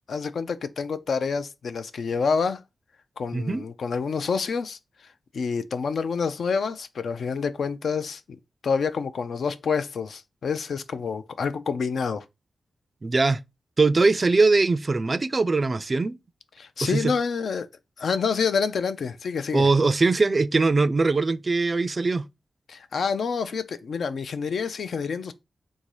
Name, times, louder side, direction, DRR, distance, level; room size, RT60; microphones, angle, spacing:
voice 1, 0.1-2.6 3.2-4.8 5.3-12.2 16.6-17.7 18.0-19.7 22.7-25.3, left 5 dB, 75° left, 0.4 m, -28 dB
voice 2, 3.3-3.6 13.0-13.4 13.8-16.2 16.8-17.1 19.5-22.3, right 3 dB, 35° right, 0.3 m, -21 dB
3.6 x 2.7 x 4.7 m
wide cardioid pair, 120°, 0 cm